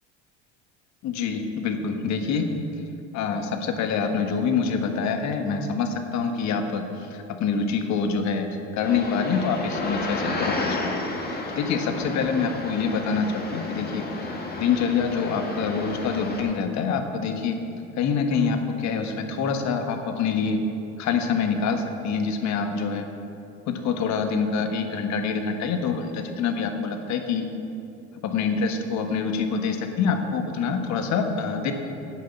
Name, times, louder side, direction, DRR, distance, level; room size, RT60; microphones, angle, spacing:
voice 1, 1.0-2.5 3.1-8.5 8.7-10.9 11.3-14.3 14.6-17.6 18.0-20.6 21.0-23.0 23.7-27.5 28.2-31.7, left 5 dB, 55° left, 6 dB, 1.5 m, -26 dB
sound 1, 8.8-16.4, left 2 dB, 30° left, 2.2 m, -32 dB
9.3 x 7.6 x 8.3 m, 2.7 s
hypercardioid pair, 85°, 34 cm